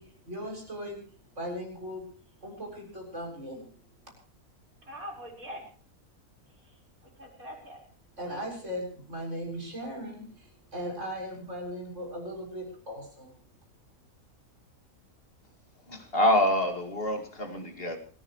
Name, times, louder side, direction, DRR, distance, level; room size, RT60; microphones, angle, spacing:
voice 1, 0.0-2.0 2.4-3.7 8.2-13.4, equal, 50° right, 0 dB, 7.5 m, -38 dB
voice 2, 4.8-5.7 6.5-7.9, equal, 70° right, 0 dB, 5.4 m, -44 dB
voice 3, 15.9-18.0, left 1 dB, 40° left, 4 dB, 2.7 m, -26 dB
27.5 x 14.5 x 3.2 m, 0.41 s
omnidirectional pair, 1.5 m